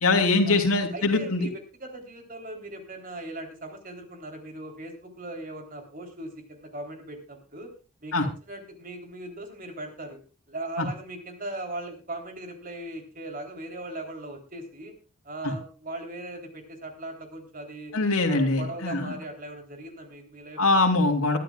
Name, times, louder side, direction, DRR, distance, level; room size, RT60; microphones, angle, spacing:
voice 1, 0.0-1.5 8.1-8.3 10.8-10.9 15.4-15.5 17.9-19.1 20.6-21.4, left 3 dB, 85° left, 5 dB, 3.1 m, -23 dB
voice 2, 0.9-7.7 8.0-10.2 10.5-14.9 15.3-17.9 18.2-20.8, right 1 dB, 40° right, 4 dB, 3.6 m, -39 dB
21.5 x 12.0 x 2.4 m, 0.33 s
head